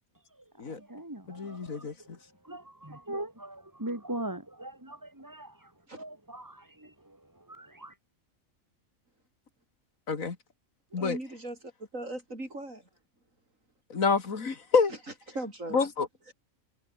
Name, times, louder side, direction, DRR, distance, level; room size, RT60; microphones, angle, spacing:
voice 1, 0.6-2.1 2.4-7.9, right 1 dB, 15° right, 3.9 m, -41 dB
voice 2, 1.3-1.9 10.1-10.4 10.9-11.2 13.9-14.9 15.7-16.1, left 5 dB, 80° left, 2.6 m, -27 dB
voice 3, 10.9-12.8 15.3-15.8 16.3-16.4, right 1 dB, 70° right, 7.8 m, -39 dB
omnidirectional pair, 1.4 m